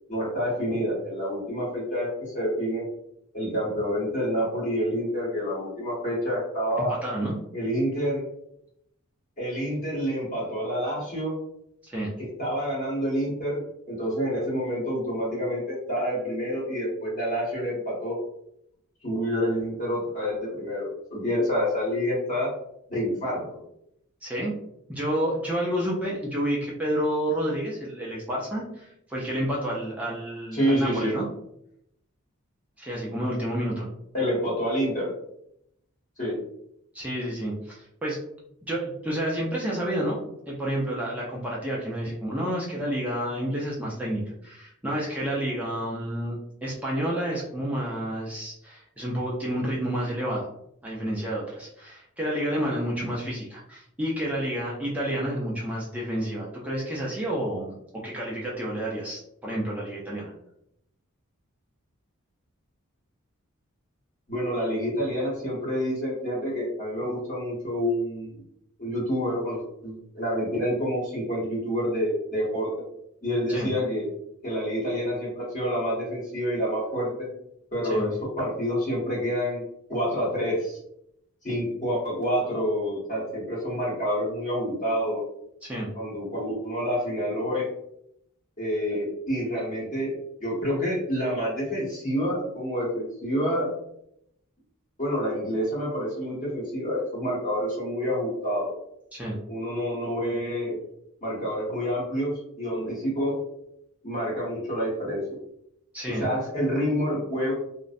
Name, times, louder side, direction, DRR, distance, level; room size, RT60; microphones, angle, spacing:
voice 1, 0.1-2.8 3.3-6.9 7.5-8.2 9.4-11.3 12.2-13.6 13.9-18.2 19.0-22.5 22.9-23.6 30.5-31.2 34.1-35.1 36.2-36.4 64.3-68.3 68.8-72.7 73.2-74.1 74.4-77.3 77.7-80.8 81.4-85.2 85.9-87.7 88.6-93.7 95.0-98.7 99.5-100.8 101.2-103.4 104.0-105.4 106.1-107.5, equal, 35° left, -7 dB, 0.9 m, -28 dB
voice 2, 7.0-7.4 11.8-12.1 24.2-24.5 24.9-31.2 32.8-33.9 36.9-38.2 38.7-40.2 40.5-50.5 50.8-57.7 58.0-60.3 73.5-73.7 77.9-78.1 85.6-85.9 99.1-99.4 105.9-106.3, right 1 dB, 5° right, -5 dB, 0.4 m, -30 dB
2.5 x 2.0 x 2.5 m, 0.75 s
head